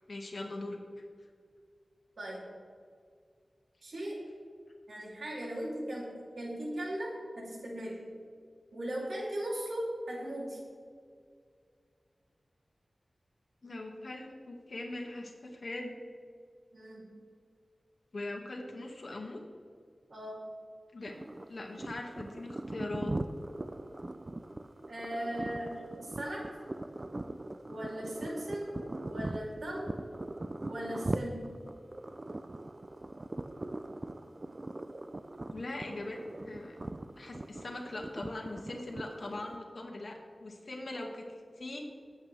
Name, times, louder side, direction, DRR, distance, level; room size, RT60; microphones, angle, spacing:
voice 1, 0.1-0.8 13.6-15.9 18.1-19.4 20.9-21.1 21.5-23.1 35.5-36.2 36.5-36.8 37.2-41.9, left 2 dB, 60° left, 1 dB, 2.0 m, -41 dB
voice 2, 2.2-2.5 3.8-4.2 4.9-8.1 8.7-10.6 16.7-17.1 20.1-20.5 24.9-26.5 27.6-28.7 29.0-30.0 30.6-31.6, right 1 dB, 80° right, -3 dB, 3.1 m, -38 dB
sound 1, 21.0-39.6, right 2 dB, 35° right, 0.5 m, -41 dB
19.5 x 8.5 x 3.4 m, 2.1 s
wide cardioid pair, 90°, 0 cm